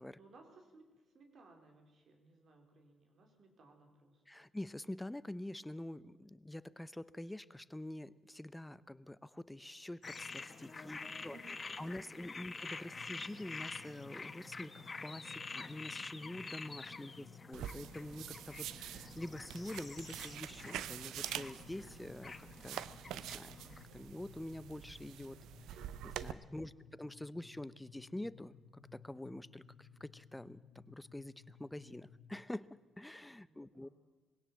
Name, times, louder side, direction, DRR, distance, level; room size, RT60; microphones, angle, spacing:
voice 1, 0.2-4.4 10.8-11.9 12.4-12.5 16.9-17.4 26.5-26.9 33.5-33.9, right 2 dB, 60° right, 3 dB, 4.3 m, -62 dB
voice 2, 4.3-11.4 11.8-22.8 23.1-23.6 23.9-25.4 25.7-33.9, left 1 dB, 10° left, 17 dB, 0.7 m, -46 dB
sound 1, 10.0-23.8, left 4 dB, 30° left, 1.2 m, -48 dB
sound 2, 12.9-32.5, left 5 dB, 85° left, 1.4 m, -59 dB
sound 3, 17.5-26.3, right 11 dB, 85° right, 0.6 m, -46 dB
21.5 x 17.0 x 7.5 m, 1.3 s
cardioid pair, 90°, 0 cm